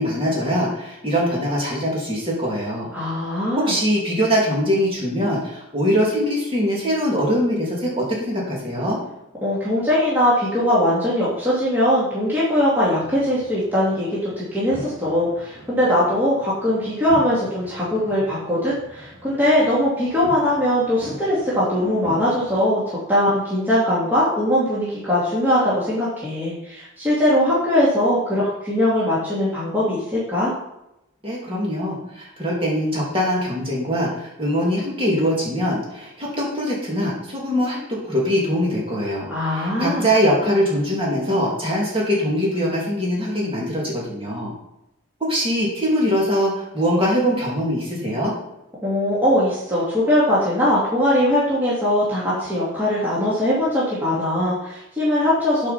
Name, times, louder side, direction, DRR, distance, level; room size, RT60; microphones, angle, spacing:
voice 1, 0.0-2.9 3.7-9.0 31.2-44.5 45.3-48.3, equal, 25° right, -4 dB, 2.6 m, -22 dB
voice 2, 2.9-3.7 9.4-30.5 39.3-40.1 48.8-55.7, left 1 dB, 10° right, -9 dB, 2.2 m, -21 dB
sound 1, 13.0-22.6, equal, 55° right, 3.6 m, -41 dB
8.9 x 4.8 x 5.8 m, 0.87 s
head